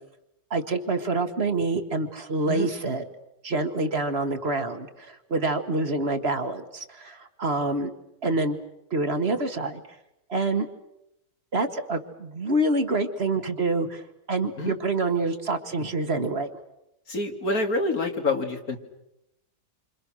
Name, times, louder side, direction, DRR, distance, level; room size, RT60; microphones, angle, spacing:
voice 1, 0.5-3.0 3.4-7.9 8.2-8.6 8.9-9.8 10.3-10.7 11.5-14.0 14.3-16.5, right 2 dB, 45° right, 7 dB, 1.7 m, -26 dB
voice 2, 17.1-18.8, left 2 dB, 70° left, 4 dB, 2.9 m, -27 dB
28.5 x 26.0 x 6.4 m, 0.86 s
omnidirectional pair, 1.6 m